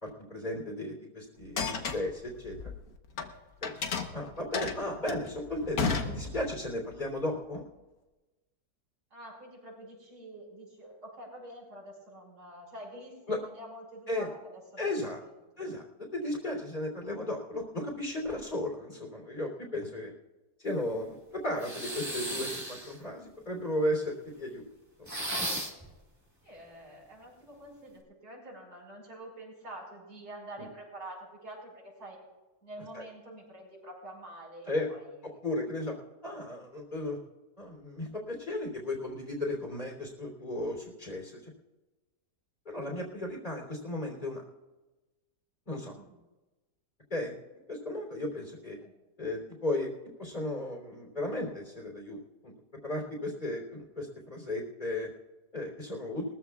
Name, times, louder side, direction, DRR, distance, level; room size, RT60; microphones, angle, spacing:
voice 1, 0.0-2.7 3.6-3.7 4.1-5.8 6.0-7.6 13.3-13.4 14.1-14.3 14.8-15.2 15.6-15.8 16.1-20.1 20.6-23.2 23.5-24.6 30.6-30.7 32.9-33.1 34.7-34.9 35.4-35.9 36.2-37.2 37.6-41.5 42.7-44.4 45.7-45.9 47.1-47.4 47.7-48.8 49.2-49.9 50.2-52.5 52.8-55.1 55.5-56.3, left 1 dB, 25° left, 0 dB, 3.5 m, -35 dB
sound 1, 1.4-3.3 3.6-6.7, left 4 dB, 65° left, 1.6 m, -33 dB
voice 2, 9.1-15.6 23.0-23.3 26.4-32.2 32.6-35.4 45.8-46.2 48.8-48.9, right 1 dB, 70° right, -3 dB, 5.9 m, -47 dB
sound 2, 21.6-23.0 25.1-25.9, right 1 dB, 10° right, 1.8 m, -35 dB
22.5 x 14.0 x 2.4 m, 1.1 s
omnidirectional pair, 1.7 m